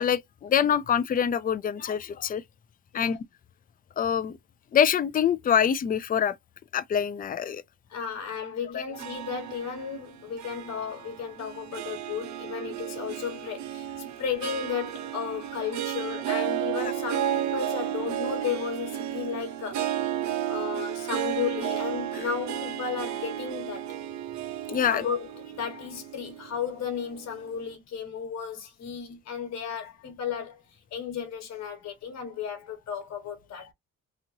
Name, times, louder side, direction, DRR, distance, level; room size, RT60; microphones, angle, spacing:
voice 1, 0.0-2.4 2.9-3.2 4.0-4.4 4.7-6.3 6.7-7.6 22.1-22.2 24.7-25.0, left 8 dB, 30° left, 0.4 m, -25 dB
voice 2, 7.9-13.9 14.2-20.0 20.5-23.9 24.9-30.6 30.9-33.7, left 7 dB, 60° left, 1.5 m, -34 dB
Harp, 8.9-27.4, right 11 dB, 65° right, 0.6 m, -33 dB
3.0 x 2.5 x 2.6 m
cardioid pair, 90°, 30 cm